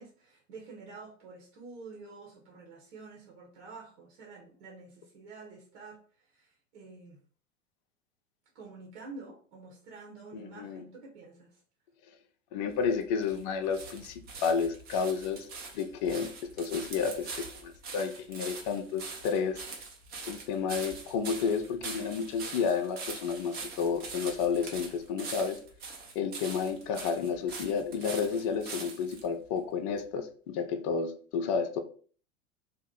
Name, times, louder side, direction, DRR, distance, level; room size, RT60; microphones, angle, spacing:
voice 1, 0.0-7.2 8.5-11.6, right 3 dB, 60° right, 1.0 m, -48 dB
voice 2, 10.3-10.8 12.5-15.5 15.7-17.3 17.6-19.6 20.3-25.6 26.1-31.8, left 6 dB, 40° left, 0.4 m, -31 dB
sound 1, 12.7-29.3 30.0-30.1, right 4 dB, 25° right, 0.7 m, -43 dB
2.7 x 2.1 x 3.6 m
figure-of-eight pair, 90°, 38 cm